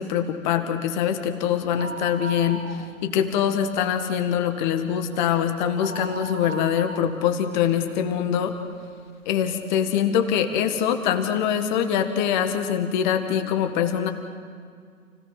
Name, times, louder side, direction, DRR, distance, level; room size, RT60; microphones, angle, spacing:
voice 1, 0.0-8.5 9.3-14.1, left 9 dB, 35° left, 7 dB, 1.8 m, -24 dB
sound 1, 1.6-3.3 3.6-3.7 4.2-8.6 9.1-9.2 10.0-10.1 10.3-10.4, right 4 dB, 60° right, 1.8 m, -38 dB
29.5 x 17.5 x 5.9 m, 2.1 s
figure-of-eight pair, 115°, 40 cm